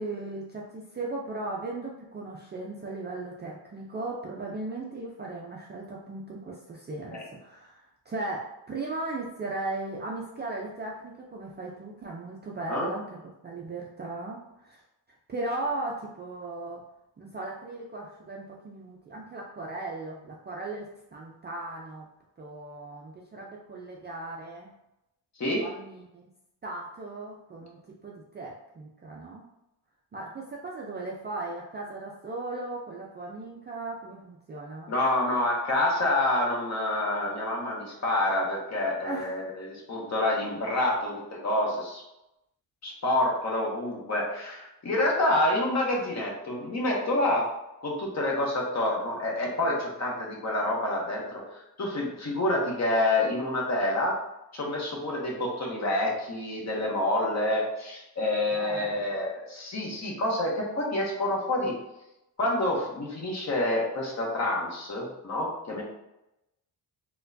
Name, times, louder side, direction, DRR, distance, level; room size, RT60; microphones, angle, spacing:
voice 1, 0.0-14.8 15.3-16.8 17.2-22.1 22.4-24.7 25.6-26.3 26.6-29.5 30.1-34.9 39.0-39.4 58.5-59.1 65.7-65.8, right 2 dB, 25° right, -3 dB, 0.3 m, -37 dB
voice 2, 34.9-42.0 42.8-47.5 47.8-54.1 54.5-61.7 62.4-65.8, left 1 dB, 40° left, -2 dB, 0.9 m, -28 dB
4.3 x 2.2 x 2.6 m, 0.90 s
cardioid pair, 125°, 43 cm